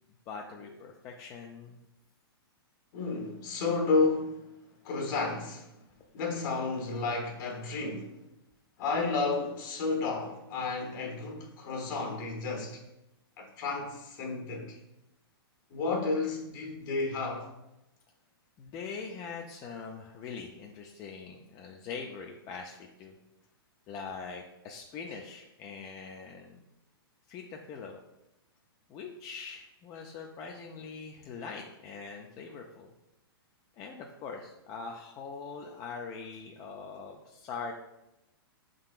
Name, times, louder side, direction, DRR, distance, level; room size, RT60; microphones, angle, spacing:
voice 1, 0.3-1.8 18.6-23.2 23.9-26.6 27.3-28.0 28.9-32.9 33.8-37.7, left 5 dB, 30° left, 0.4 m, -42 dB
voice 2, 2.9-4.4 4.8-5.7 6.1-8.2 8.8-12.8 13.4-14.8 15.7-17.5, left 3 dB, 55° left, 1.1 m, -31 dB
5.4 x 3.7 x 2.5 m
hypercardioid pair, 125°, 13 cm